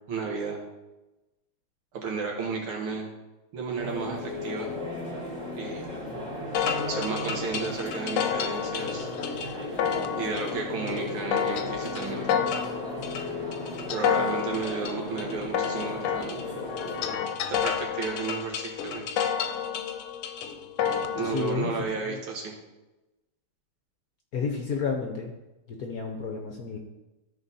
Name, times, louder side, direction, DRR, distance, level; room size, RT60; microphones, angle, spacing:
voice 1, 0.1-0.6 1.9-3.1 3.5-4.7 5.5-5.8 6.9-9.1 10.2-12.4 13.9-16.4 17.5-19.0 21.2-22.5, right 4 dB, 75° right, 0 dB, 2.4 m, -33 dB
sound 1, 3.8-17.1, left 1 dB, 20° right, 2.4 m, -36 dB
sound 2, 6.5-21.5, left 8 dB, 85° left, 1.6 m, -30 dB
voice 2, 21.2-22.2 24.3-25.3 25.7-26.8, left 5 dB, 60° left, 2 dB, 1.0 m, -31 dB
13.5 x 4.6 x 4.1 m, 1.0 s
omnidirectional pair, 2.4 m